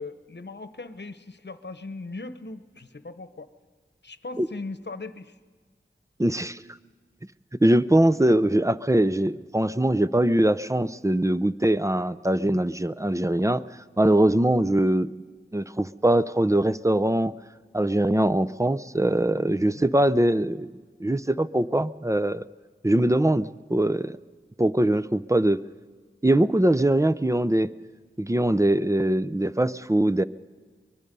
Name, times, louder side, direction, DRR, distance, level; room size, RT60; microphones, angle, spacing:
voice 1, 0.0-3.5 4.0-5.4 12.4-12.6 18.9-19.2 19.6-19.9 28.5-28.6, left 3 dB, 60° left, 11 dB, 1.1 m, -39 dB
voice 2, 6.2-6.6 7.6-13.6 14.0-15.1 15.5-17.3 17.7-20.7 21.0-22.5 22.8-24.2 24.6-25.6 26.2-27.7 28.2-30.2, right 1 dB, 15° right, 15 dB, 0.6 m, -22 dB
24.0 x 21.5 x 5.4 m, 1.5 s
wide cardioid pair, 40°, 21 cm